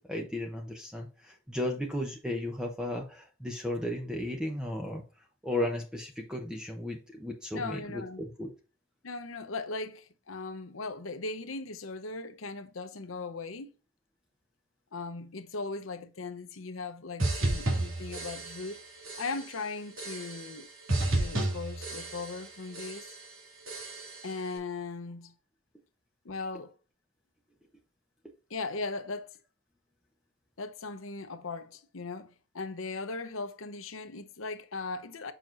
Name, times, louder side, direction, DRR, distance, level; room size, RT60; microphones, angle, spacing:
voice 1, 0.0-8.5, left 1 dB, 5° right, 0.8 m, -35 dB
voice 2, 7.5-8.2 9.0-13.7 14.9-18.8 19.2-20.7 21.1-23.1 24.2-25.3 26.2-26.8 28.5-29.3 30.6-35.3, left 3 dB, 80° left, 0.9 m, -38 dB
sound 1, 17.2-18.8 19.0-19.6 20.0-20.6 20.9-22.5 22.7-23.3 23.7-24.3, right 2 dB, 85° right, 2.8 m, -32 dB
7.1 x 6.0 x 2.6 m
head